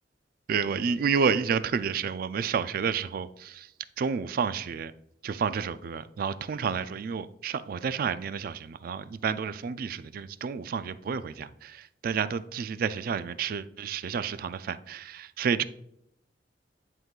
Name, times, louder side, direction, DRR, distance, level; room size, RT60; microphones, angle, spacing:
voice 1, 0.5-3.7 4.0-4.9 5.2-15.6, right 6 dB, 55° right, 0.3 m, -30 dB
10.5 x 3.8 x 2.4 m
head